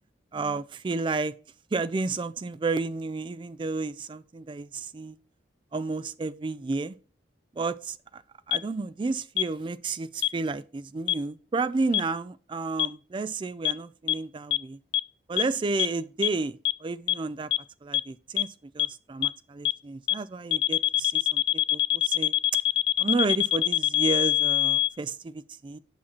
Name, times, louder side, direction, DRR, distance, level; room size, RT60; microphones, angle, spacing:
voice 1, 0.3-1.3 1.7-5.2 5.7-7.0 7.5-8.2 8.5-14.8 15.3-17.5 17.8-22.3 23.0-25.8, right 3 dB, 25° right, 0.3 m, -31 dB
sound 1, 8.5-8.6 9.4-9.5 10.2-10.3 11.1-11.2 11.9-12.0 12.8-12.9 13.6-13.7 14.1-14.2 14.5-14.6 14.9-15.0 15.4-15.5 15.8-15.9 16.2-16.3 16.6-16.7 17.1-17.2 17.5-17.6 17.9-18.0 18.4-18.5 18.8-18.9 19.2-19.3 19.6-19.7 20.1-20.2 20.5-24.9, left 14 dB, 65° left, 0.3 m, -23 dB
8.7 x 5.7 x 3.0 m
head